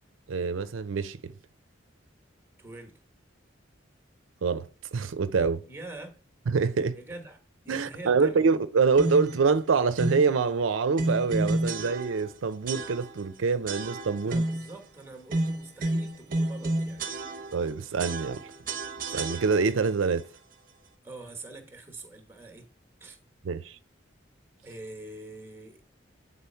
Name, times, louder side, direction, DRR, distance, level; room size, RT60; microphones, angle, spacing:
voice 1, 0.3-1.3 4.4-5.6 6.5-7.0 7.7-14.4 17.5-18.5 19.1-20.3 23.4-23.8, right 5 dB, 85° right, 0.5 m, -26 dB
voice 2, 2.6-3.0 5.6-6.2 6.9-7.4 7.6-8.5 14.2-17.0 21.0-22.7 23.0-23.2 24.6-25.9, right 2 dB, 10° right, 1.1 m, -44 dB
sound 1, 9.0-9.4 10.0-10.3 11.0-12.3 12.7-13.3 13.7-14.7 15.3-17.7 18.0-19.9, right 1 dB, 45° right, 0.8 m, -31 dB
8.3 x 4.1 x 4.3 m
head